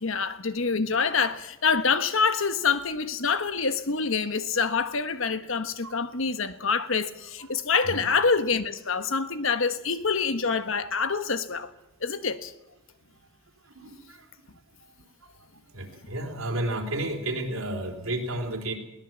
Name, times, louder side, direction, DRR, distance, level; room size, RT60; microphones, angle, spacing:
voice 1, 0.0-11.7 12.0-12.5, left 5 dB, 70° left, 1.3 m, -26 dB
voice 2, 13.7-14.3 15.7-18.7, right 1 dB, 75° right, 3.8 m, -32 dB
21.5 x 18.0 x 7.5 m
head